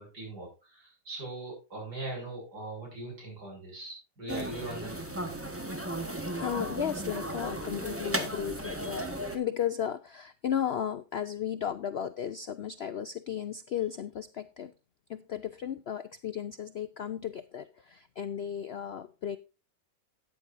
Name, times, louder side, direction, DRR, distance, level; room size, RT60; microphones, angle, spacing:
voice 1, 0.0-5.0, right 2 dB, 80° right, 0 dB, 6.8 m, -40 dB
sound 1, 4.3-9.4, right 1 dB, 10° right, 1.2 m, -35 dB
voice 2, 6.4-9.1 9.3-14.7 15.1-19.4, left 9 dB, 70° left, 12 dB, 0.6 m, -34 dB
13.5 x 9.5 x 2.6 m, 0.30 s
omnidirectional pair, 1.7 m